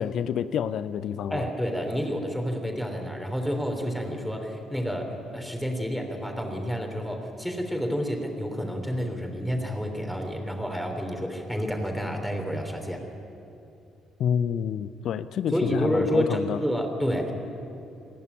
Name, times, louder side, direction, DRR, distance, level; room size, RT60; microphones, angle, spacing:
voice 1, 0.0-1.4 14.2-16.6, left 8 dB, 55° left, 15 dB, 0.5 m, -28 dB
voice 2, 1.3-13.0 15.5-17.3, equal, ahead, 3 dB, 3.4 m, -29 dB
26.0 x 11.0 x 9.8 m, 2.8 s
figure-of-eight pair, 45°, 0 cm